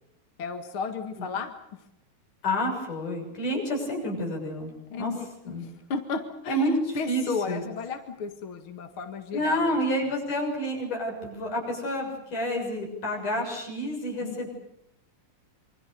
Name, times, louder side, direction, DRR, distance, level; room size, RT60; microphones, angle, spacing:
voice 1, 0.4-1.5 4.9-6.6 7.0-9.7 14.2-14.5, left 5 dB, 45° left, 6 dB, 2.2 m, -34 dB
voice 2, 2.4-5.1 5.5-5.7 6.5-7.6 9.3-14.5, equal, 60° left, 0 dB, 8.6 m, -29 dB
27.0 x 24.0 x 6.8 m, 0.79 s
omnidirectional pair, 4.0 m